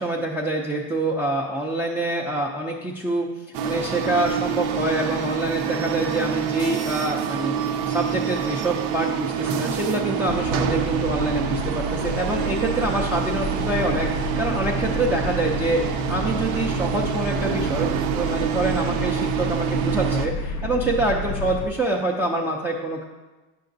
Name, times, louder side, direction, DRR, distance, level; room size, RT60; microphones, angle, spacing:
voice 1, 0.0-3.3 3.6-23.0, right 2 dB, 5° right, -3 dB, 0.4 m, -26 dB
sound 1, 3.5-20.3, right 8 dB, 65° right, 0.6 m, -26 dB
sound 2, 10.3-21.7, left 1 dB, 55° left, 0.6 m, -30 dB
9.3 x 5.7 x 2.6 m, 1.2 s
cardioid pair, 135°, 33 cm